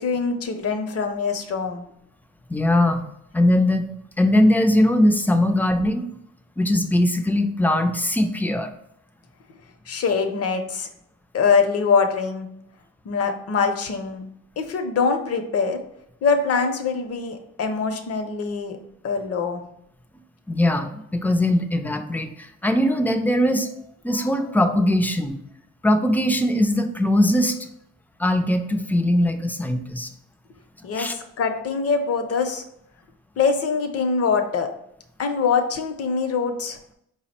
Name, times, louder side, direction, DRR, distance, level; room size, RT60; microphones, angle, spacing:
voice 1, 0.0-1.8 9.9-10.9 11.3-12.5 13.0-14.2 14.6-15.8 16.2-18.8 19.0-19.6 30.8-32.6 33.4-34.7 35.2-36.8, left 5 dB, 55° left, 6 dB, 0.7 m, -23 dB
voice 2, 2.5-3.0 3.3-3.9 4.2-6.0 6.6-8.7 20.5-23.7 24.0-25.4 25.8-27.6 28.2-30.1 30.9-31.1, left 1 dB, 5° left, 6 dB, 0.4 m, -20 dB
4.7 x 2.1 x 4.2 m, 0.75 s
cardioid pair, 90°, 30 cm